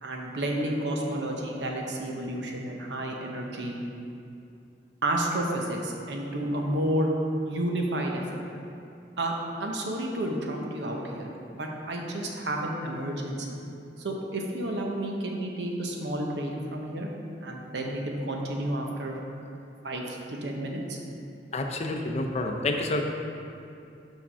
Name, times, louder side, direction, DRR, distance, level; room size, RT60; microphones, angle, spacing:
voice 1, 0.0-3.7 5.0-7.1 7.4-8.4 9.2-9.3 9.6-13.6 14.0-17.1 17.4-19.2 19.8-21.0, right 1 dB, 80° right, 0 dB, 0.9 m, -31 dB
voice 2, 21.5-23.0, left 2 dB, 40° left, 3 dB, 0.5 m, -28 dB
5.9 x 5.0 x 5.5 m, 2.6 s
head